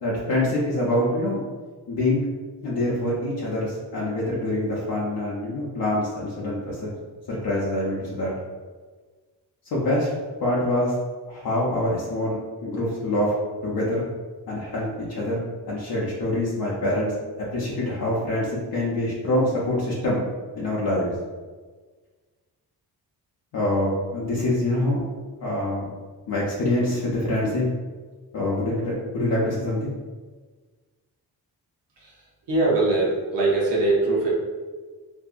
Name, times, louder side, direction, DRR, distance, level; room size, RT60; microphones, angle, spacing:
voice 1, 0.0-1.4 1.9-2.3 2.6-6.9 7.3-8.3 9.7-10.1 10.4-10.9 11.3-13.3 13.6-14.1 14.5-15.4 15.7-17.1 17.4-20.2 20.6-21.1 23.5-25.0 25.4-25.9 26.3-27.7 28.3-29.9, left 1 dB, 60° left, -6 dB, 0.7 m, -25 dB
voice 2, 32.5-34.3, right 2 dB, 80° right, -4 dB, 0.8 m, -21 dB
2.6 x 2.6 x 2.4 m, 1.4 s
cardioid pair, 55°, 41 cm